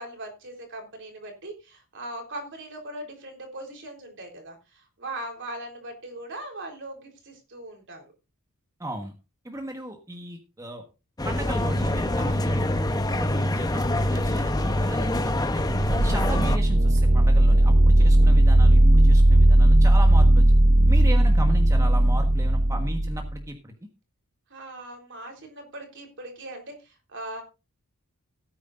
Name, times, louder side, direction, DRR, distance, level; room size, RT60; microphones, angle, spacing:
voice 1, 0.0-8.0 24.5-27.4, right 1 dB, 55° right, 3 dB, 3.8 m, -39 dB
voice 2, 8.8-9.1 9.4-10.8 11.2-12.9 13.2-15.6 15.9-20.4 20.9-23.7, right 1 dB, 15° right, 3 dB, 1.3 m, -36 dB
sound 1, 11.2-16.6, left 1 dB, 15° left, 0.8 m, -25 dB
sound 2, 15.6-23.4, right 1 dB, 35° right, 0.6 m, -17 dB
17.5 x 9.5 x 2.6 m, 0.28 s
head